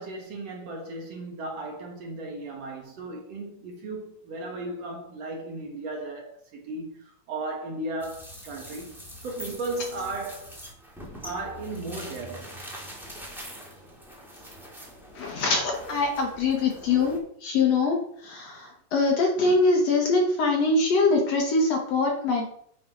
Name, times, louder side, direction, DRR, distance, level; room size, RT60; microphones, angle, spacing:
voice 1, 0.0-10.6 11.2-12.5, right 2 dB, 60° right, 2.1 m, -36 dB
sound 1, 8.0-17.2, equal, ahead, 0.8 m, -43 dB
voice 2, 15.2-18.0 18.2-22.5, left 3 dB, 65° left, 2.0 m, -23 dB
7.5 x 4.2 x 5.0 m
omnidirectional pair, 3.6 m